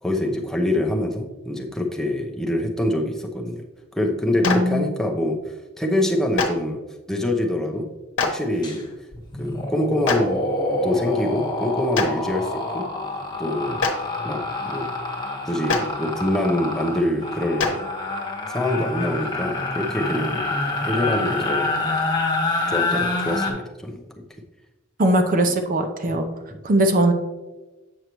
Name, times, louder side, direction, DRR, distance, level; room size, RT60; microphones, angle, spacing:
voice 1, 0.0-3.6 3.9-5.4 5.8-6.8 7.1-7.9 8.2-8.9 9.4-10.5 10.8-12.9 13.4-13.8 14.2-14.9 15.5-17.8 18.5-20.6 20.8-21.8 22.7-24.0 26.1-26.2, left 1 dB, ahead, 0 dB, 0.7 m, -25 dB
Clapping, 4.4-4.5 6.3-6.5 8.2-8.3 10.0-10.2 11.9-12.0 13.8-13.9 15.7-15.8 17.6-17.7, left 4 dB, 65° left, 1.1 m, -21 dB
voice 2, 4.4-4.8 25.0-26.3 26.6-27.1, right 1 dB, 40° right, 6 dB, 0.6 m, -19 dB
sound 1, 8.6-8.8 9.1-23.5, left 2 dB, 20° left, 1.5 m, -27 dB
8.1 x 6.4 x 3.0 m, 1.1 s
head